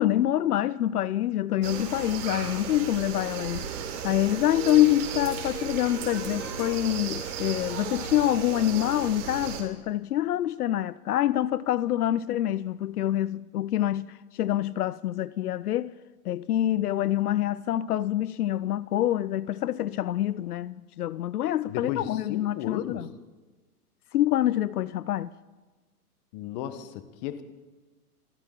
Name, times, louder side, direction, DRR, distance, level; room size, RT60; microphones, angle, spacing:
voice 1, 0.0-3.7 4.0-14.1 14.3-15.9 16.3-23.1 24.1-25.3, left 13 dB, 75° left, 0.6 m, -26 dB
sound 1, 1.6-9.6, right 7 dB, 50° right, 3.9 m, -35 dB
voice 2, 21.7-23.1 26.3-27.4, left 10 dB, 30° left, 1.1 m, -34 dB
27.0 x 13.5 x 3.8 m
hypercardioid pair, 150°, 45 cm